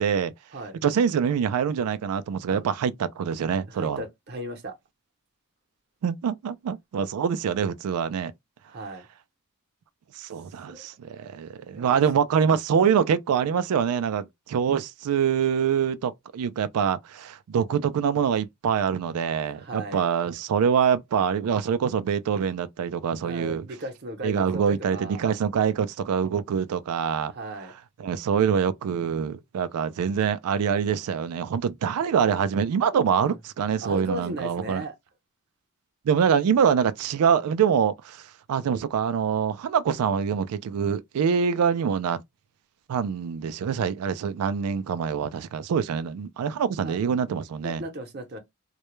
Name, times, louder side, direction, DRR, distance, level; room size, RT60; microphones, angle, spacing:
voice 1, 0.0-0.3 0.8-4.0 6.0-8.3 10.2-23.6 24.2-27.3 28.0-34.8 36.1-42.2 42.9-47.8, right 7 dB, 90° right, 0.3 m, -25 dB
voice 2, 3.6-4.8 8.7-9.1 10.7-10.9 11.7-12.0 19.5-20.1 23.2-25.3 27.3-27.7 33.2-33.4 33.8-34.9 46.8-47.0 47.6-48.4, right 1 dB, 50° right, 0.7 m, -36 dB
2.2 x 2.1 x 3.0 m
head